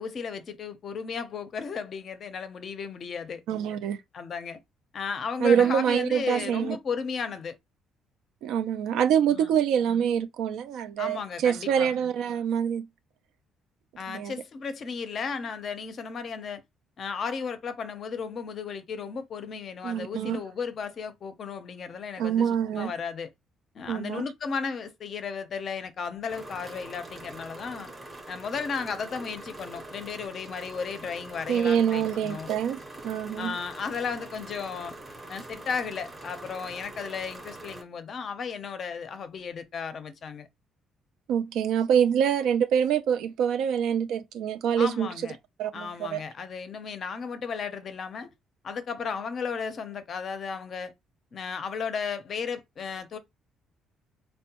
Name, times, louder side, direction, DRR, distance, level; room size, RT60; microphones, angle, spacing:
voice 1, 0.0-3.4 4.1-4.6 4.9-7.6 9.3-9.6 11.0-12.0 14.0-16.6 17.0-23.3 23.7-27.9 28.3-32.5 33.4-35.0 35.3-40.5 44.8-45.4 45.7-48.3 48.6-50.9 51.3-53.2, left 5 dB, 35° left, 0.5 m, -34 dB
voice 2, 3.5-4.0 5.4-6.8 8.4-12.9 14.1-14.4 19.8-20.4 22.2-22.9 23.9-24.2 31.5-33.5 41.3-45.1 45.6-46.2, right 8 dB, 75° right, 0.3 m, -25 dB
sound 1, 26.3-37.8, right 2 dB, 10° right, 0.7 m, -44 dB
4.3 x 2.1 x 2.8 m
cardioid pair, 170°, 0 cm